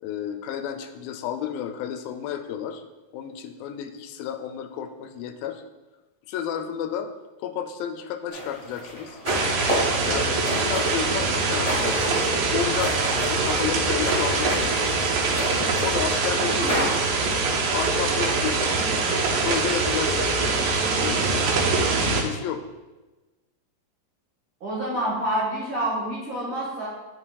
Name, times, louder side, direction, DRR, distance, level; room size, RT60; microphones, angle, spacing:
voice 1, 0.0-2.8 3.1-5.6 6.3-7.1 7.4-9.2 10.1-14.9 15.8-16.9 17.7-18.7 19.4-20.5 21.0-21.5 22.0-22.6, left 8 dB, 90° left, 7 dB, 2.4 m, -32 dB
sound 1, 8.3-17.1, equal, 25° left, 0.8 m, -32 dB
sound 2, 9.2-22.2, right 3 dB, 80° right, 2.5 m, -23 dB
voice 2, 16.4-16.9 24.6-26.9, right 1 dB, 65° right, -7 dB, 1.2 m, -28 dB
9.8 x 5.0 x 2.3 m, 1.1 s
omnidirectional pair, 4.0 m